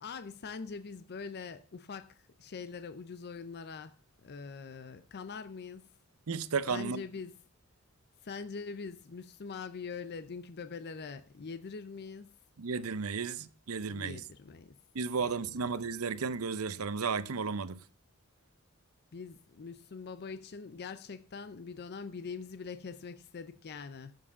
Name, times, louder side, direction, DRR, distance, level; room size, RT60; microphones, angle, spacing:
voice 1, 0.0-5.9 6.7-7.4 8.2-12.3 13.9-14.8 15.2-15.3 15.6-15.7 19.1-24.2, left 5 dB, 50° left, 0.5 m, -43 dB
voice 2, 6.3-7.0 12.6-14.2 14.9-17.8, right 5 dB, 80° right, 0.7 m, -33 dB
7.4 x 7.4 x 6.8 m
head